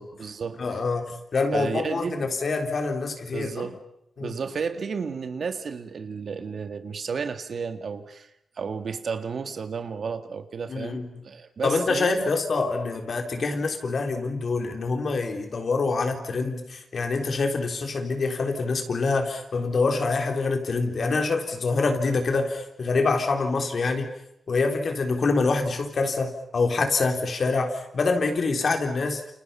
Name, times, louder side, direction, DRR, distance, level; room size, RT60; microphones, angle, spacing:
voice 1, 0.0-0.8 1.5-2.3 3.3-3.8 4.2-8.3 8.6-12.3, right 5 dB, 65° right, 8 dB, 2.1 m, -32 dB
voice 2, 0.6-3.6 4.2-4.3 10.7-11.1 11.6-24.1 24.5-29.2, left 3 dB, 55° left, 5 dB, 3.8 m, -25 dB
29.0 x 29.0 x 5.8 m, 0.79 s
wide cardioid pair, 100°, 0 cm